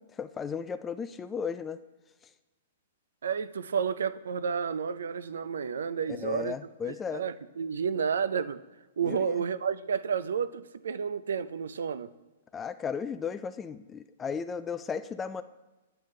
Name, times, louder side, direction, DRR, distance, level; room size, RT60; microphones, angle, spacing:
voice 1, 0.0-1.8 6.1-7.2 9.0-9.4 12.5-15.4, left 6 dB, 20° left, 11 dB, 0.3 m, -35 dB
voice 2, 3.2-6.6 6.8-8.6 9.0-12.1, right 6 dB, 70° right, 14 dB, 0.4 m, -31 dB
8.7 x 7.7 x 3.2 m, 1.1 s
figure-of-eight pair, 115°, 0 cm